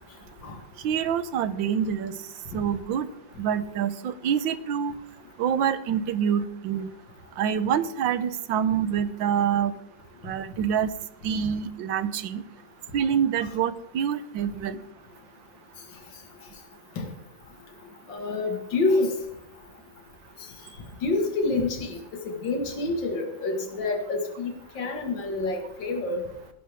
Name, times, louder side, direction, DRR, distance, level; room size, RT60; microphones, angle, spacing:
voice 1, 0.8-2.2 2.5-3.1 3.4-4.9 5.4-6.9 7.4-9.7 10.2-10.9 11.2-12.4 12.9-14.8, right 8 dB, 85° right, 14 dB, 1.6 m, -26 dB
voice 2, 18.1-19.1 21.0-22.0 22.2-26.2, left 3 dB, 75° left, 3 dB, 2.6 m, -27 dB
19.0 x 11.5 x 3.6 m, 0.79 s
omnidirectional pair, 2.0 m